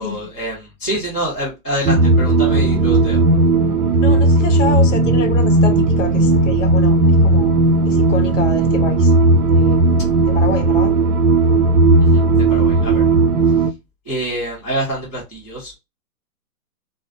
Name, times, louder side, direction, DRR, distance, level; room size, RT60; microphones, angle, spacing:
voice 1, 0.0-3.2 12.1-12.2 12.5-13.0 14.0-15.7, right 1 dB, 5° left, 0.3 m, -26 dB
sound 1, 1.8-13.7, right 2 dB, 90° right, 0.5 m, -15 dB
voice 2, 3.9-7.5 7.9-9.1 9.4-9.8 10.2-11.0, left 5 dB, 55° left, 0.7 m, -27 dB
2.6 x 2.0 x 2.5 m
hypercardioid pair, 130°, 43 cm